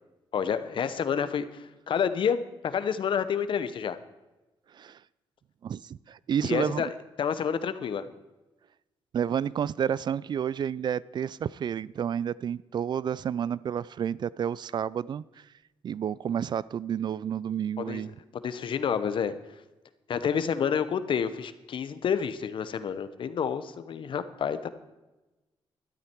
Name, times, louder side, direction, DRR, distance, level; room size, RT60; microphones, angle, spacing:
voice 1, 0.3-4.0 6.4-6.9 7.2-8.0 17.8-18.0 18.4-19.3 20.1-24.7, left 7 dB, 60° left, 0.9 m, -29 dB
voice 2, 5.6-6.9 9.1-15.2 15.8-18.2, right 8 dB, 50° right, 0.3 m, -30 dB
13.0 x 12.0 x 4.6 m
cardioid pair, 95°, 10 cm